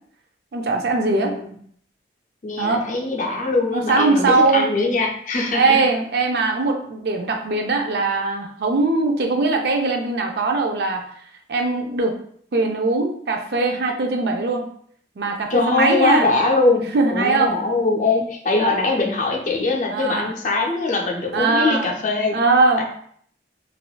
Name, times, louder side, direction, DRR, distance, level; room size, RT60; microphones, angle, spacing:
voice 1, 0.5-1.3 2.6-2.9 3.7-4.7 5.5-11.1 11.5-12.1 12.5-14.6 15.2-16.3 16.9-17.5 19.9-20.3 21.3-21.9 22.3-22.8, right 3 dB, 60° right, 3 dB, 0.4 m, -20 dB
voice 2, 1.1-1.5 2.4-5.8 15.5-22.4 22.8-22.9, left 3 dB, 45° left, -1 dB, 0.5 m, -22 dB
3.4 x 2.4 x 2.2 m, 0.62 s
head